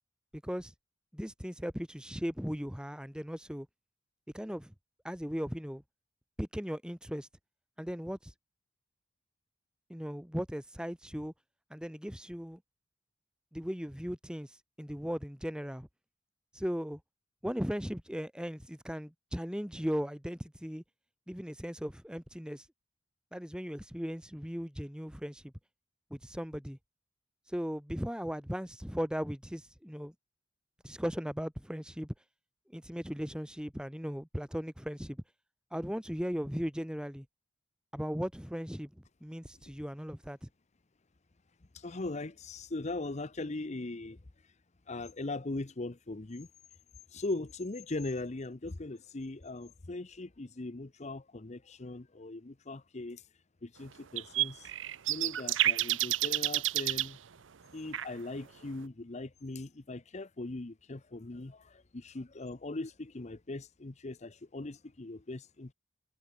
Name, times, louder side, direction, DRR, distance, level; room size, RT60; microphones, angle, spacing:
voice 1, 0.4-0.7 1.1-3.7 4.3-4.7 5.0-5.8 6.4-7.3 7.8-8.3 9.9-11.3 11.7-12.6 13.5-15.9 16.5-17.0 17.4-20.8 21.3-22.7 23.3-25.5 26.1-26.8 27.5-30.1 30.8-32.1 32.7-35.2 35.7-37.3 37.9-38.9 39.2-40.5, equal, 5° right, 2.3 m, -37 dB
voice 2, 41.7-44.2 44.9-46.5 47.1-53.2 53.6-54.7 55.1-57.2 57.7-65.7, left 2 dB, 35° left, 0.8 m, -40 dB
sound 1, 54.2-57.1 57.9-58.1, right 14 dB, 80° right, 0.7 m, -30 dB
head